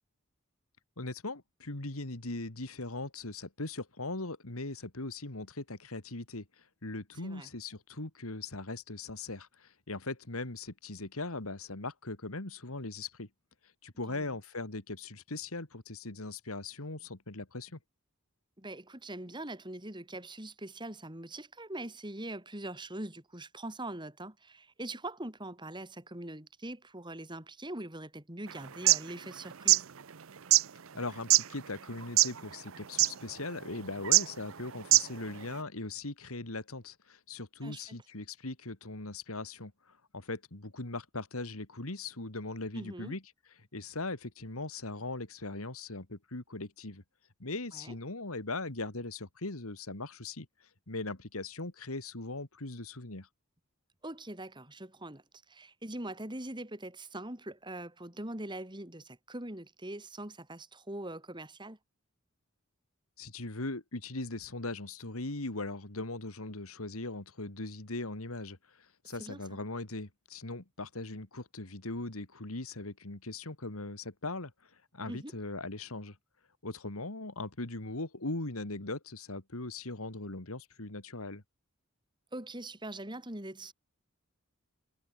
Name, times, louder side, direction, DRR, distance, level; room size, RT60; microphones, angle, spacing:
voice 1, 1.0-13.3 13.8-17.8 30.9-43.2 43.7-47.0 47.4-50.5 50.9-53.3 63.2-74.5 74.9-76.2 76.6-81.4, left 2 dB, 80° left, 2.6 m, -40 dB
voice 2, 18.6-29.8 37.6-38.0 42.7-43.2 47.7-47.9 54.0-61.8 69.1-69.4 75.1-75.4 82.3-83.7, right 1 dB, 20° right, 3.8 m, -42 dB
sound 1, 28.7-29.0 29.5-29.8 30.5-30.6 31.3-31.4 32.0-32.4 32.7-32.8 33.0-33.1 34.0-34.2 34.8-35.2, right 16 dB, 65° right, 0.7 m, -21 dB
head